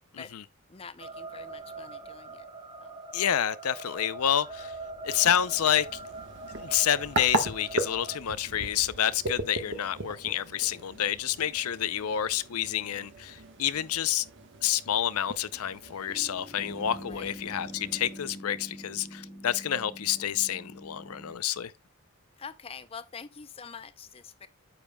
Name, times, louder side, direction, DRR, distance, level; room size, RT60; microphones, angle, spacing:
voice 1, 0.7-2.5 2.8-3.0 17.1-17.3 22.4-24.5, left 6 dB, 25° left, 0.5 m, -45 dB
sound 1, 1.0-8.2, right 3 dB, 20° right, 0.9 m, -43 dB
voice 2, 3.1-4.7 5.0-5.9 6.6-14.2 14.6-21.7, left 10 dB, 80° left, 0.5 m, -29 dB
sound 2, 5.0-18.3, right 1 dB, 55° right, 1.3 m, -38 dB
sound 3, 16.1-21.3, equal, 5° left, 1.1 m, -45 dB
9.2 x 7.2 x 2.3 m
head